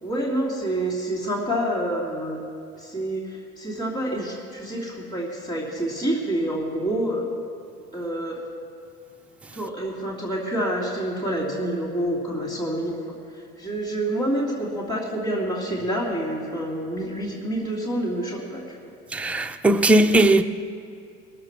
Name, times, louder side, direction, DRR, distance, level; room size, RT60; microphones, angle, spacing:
voice 1, 0.0-2.4 2.8-7.3 7.9-8.4 9.5-13.1 13.6-18.9, right 1 dB, 15° left, 2.8 m, -27 dB
voice 2, 19.1-20.4, right 1 dB, 5° right, 0.3 m, -18 dB
19.5 x 6.8 x 6.1 m
cardioid pair, 135°, 29 cm